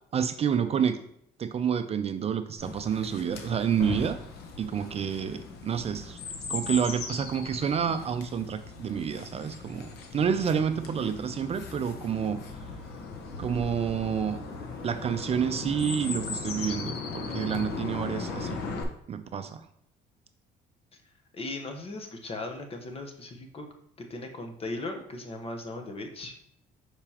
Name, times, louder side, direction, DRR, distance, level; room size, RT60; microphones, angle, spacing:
voice 1, 0.1-1.0 1.4-4.2 4.6-6.2 6.5-12.4 13.4-14.4 14.8-18.6 19.1-19.6, right 7 dB, 35° right, 9 dB, 0.4 m, -29 dB
Chirp tweet, 2.6-18.8, left 4 dB, 75° left, 1.1 m, -38 dB
voice 2, 21.3-23.7 24.1-26.4, left 2 dB, 35° left, 4 dB, 1.1 m, -37 dB
6.9 x 4.8 x 2.9 m, 0.72 s
cardioid pair, 110°, 17 cm